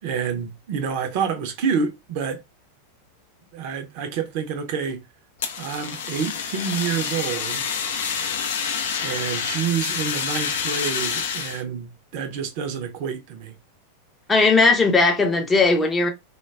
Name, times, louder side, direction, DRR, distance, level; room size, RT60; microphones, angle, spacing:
voice 1, 0.0-2.4 3.5-5.0 5.6-7.7 9.0-13.5, right 6 dB, 45° right, 0.6 m, -28 dB
Fire, 5.4-11.6, left 6 dB, 55° left, 0.4 m, -28 dB
voice 2, 14.3-16.1, left 3 dB, 15° left, 0.6 m, -17 dB
2.2 x 2.2 x 3.2 m
figure-of-eight pair, 90°, 0 cm